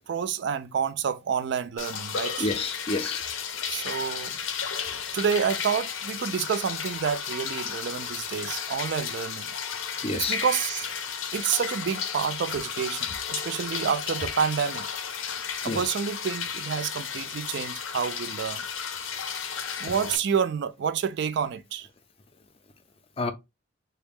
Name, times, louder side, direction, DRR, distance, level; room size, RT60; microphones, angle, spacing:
voice 1, 0.0-2.5 3.7-4.3 5.1-9.5 10.1-10.9 11.3-14.9 15.6-18.7 19.8-21.9, right 7 dB, 60° right, 0.3 m, -29 dB
sound 1, 1.8-20.2, left 7 dB, 80° left, 0.6 m, -33 dB
voice 2, 2.4-3.2 10.0-10.4 15.7-15.8 23.2-23.3, left 3 dB, 30° left, 0.4 m, -28 dB
3.4 x 2.2 x 3.4 m
head